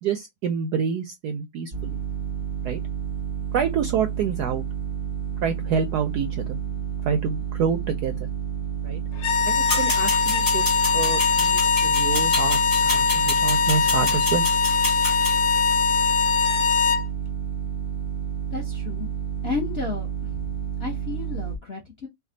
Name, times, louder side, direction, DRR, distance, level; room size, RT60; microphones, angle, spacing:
voice 1, 0.0-2.0 2.6-2.8 3.5-4.6 5.4-6.6 7.0-8.3 8.8-9.0 9.4-10.7 10.9-14.5, right 6 dB, 75° right, 0.9 m, -27 dB
sound 1, 1.7-21.6, right 8 dB, 40° right, 0.6 m, -30 dB
sound 2, 9.2-17.1, left 6 dB, 80° left, 1.4 m, -21 dB
sound 3, 9.7-15.4, left 1 dB, 15° left, 0.6 m, -30 dB
voice 2, 18.5-19.1 19.4-20.4 20.8-22.1, left 5 dB, 50° left, 0.8 m, -32 dB
3.3 x 2.3 x 3.8 m
omnidirectional pair, 2.2 m